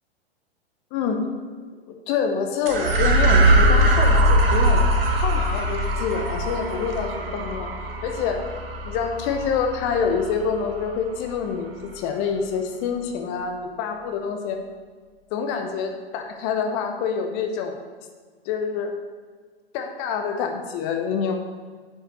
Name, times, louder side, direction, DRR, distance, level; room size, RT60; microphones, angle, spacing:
voice 1, 0.9-1.3 1.9-4.8 5.2-7.7 8.0-8.4 8.9-14.6 15.3-17.8 18.5-18.9 19.7-21.4, left 6 dB, 30° left, 5 dB, 0.9 m, -26 dB
sound 1, 2.7-11.3, right 1 dB, 65° right, 1.2 m, -21 dB
10.5 x 7.7 x 3.2 m, 1.5 s
figure-of-eight pair, 105°, 32 cm